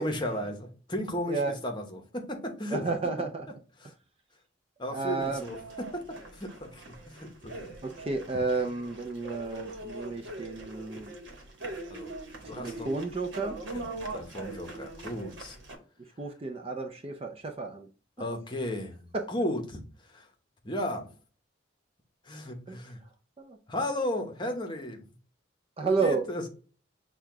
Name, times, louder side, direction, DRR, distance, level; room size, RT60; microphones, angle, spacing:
voice 1, 0.0-2.9 3.8-3.9 4.8-6.0 6.3-7.8 11.9-12.1 12.4-12.9 13.7-15.6 18.2-19.8 20.1-20.3 20.6-21.1 22.3-23.0 23.7-25.1 25.8-26.5, left 1 dB, 25° left, 0.9 m, -35 dB
voice 2, 2.7-3.5 4.9-5.4 7.8-11.1 12.5-13.6 16.2-17.9 19.1-19.2 22.7-22.8 23.4-23.6 25.8-26.2, right 3 dB, 30° right, 0.5 m, -31 dB
sound 1, 5.2-15.8, right 2 dB, 65° right, 1.1 m, -42 dB
6.4 x 2.3 x 3.5 m
head